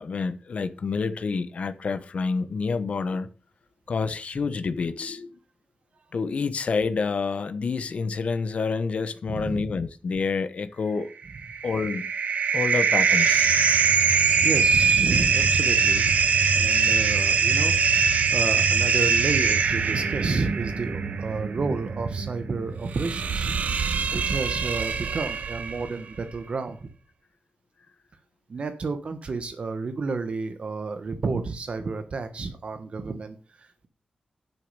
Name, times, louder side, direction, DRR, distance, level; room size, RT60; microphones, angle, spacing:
voice 1, 0.0-3.3 3.9-5.3 6.1-11.1 11.6-12.1 12.5-13.5, left 4 dB, 55° left, 1.0 m, -28 dB
voice 2, 9.3-9.7 14.4-16.2 16.5-23.6 24.1-26.9 28.5-33.9, right 4 dB, 50° right, 1.2 m, -31 dB
sound 1, 11.3-25.9, right 5 dB, 85° right, 1.6 m, -23 dB
10.5 x 6.5 x 6.7 m
wide cardioid pair, 160°, 3 cm